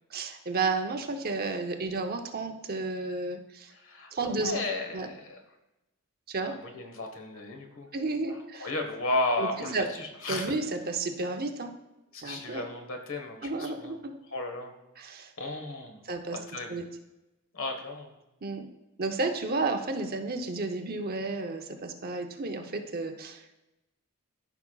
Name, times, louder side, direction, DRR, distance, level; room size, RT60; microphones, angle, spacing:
voice 1, 0.1-3.7 4.1-4.6 4.9-5.1 6.3-6.5 7.9-8.7 9.4-9.9 10.3-11.7 12.2-12.6 13.4-14.1 15.0-15.3 16.1-16.4 16.7-16.8 18.4-18.6 19.0-23.5, right 3 dB, 45° right, 4 dB, 0.8 m, -32 dB
voice 2, 3.7-5.4 6.5-7.9 8.3-10.5 12.1-14.0 14.3-14.7 15.4-16.0 16.3-16.8 17.5-18.1, left 2 dB, 70° left, 4 dB, 1.4 m, -34 dB
13.5 x 5.9 x 2.4 m, 0.97 s
head